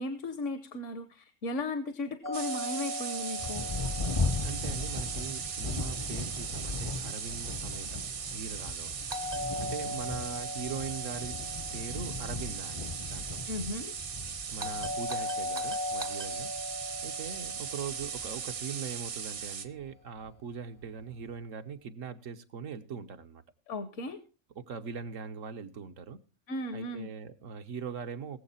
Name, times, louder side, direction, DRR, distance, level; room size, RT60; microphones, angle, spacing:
voice 1, 0.0-3.7 13.5-13.9 23.7-24.2 26.5-27.1, left 2 dB, 75° left, 11 dB, 1.3 m, -36 dB
Doorbell, 2.2-6.2 9.1-13.3 14.6-19.0, left 2 dB, 30° right, 0.5 m, -39 dB
sound 1, 2.3-19.7, right 7 dB, 70° right, 1.3 m, -39 dB
Thunder, 3.4-19.4 20.2-20.3 20.9-21.3, left 3 dB, 35° left, 0.5 m, -38 dB
voice 2, 4.4-7.9 8.3-8.9 9.6-13.4 14.5-16.5 17.0-23.4 24.6-26.2 26.7-28.4, right 6 dB, 85° right, 7 dB, 1.4 m, -41 dB
21.0 x 7.5 x 4.2 m, 0.33 s
omnidirectional pair, 1.3 m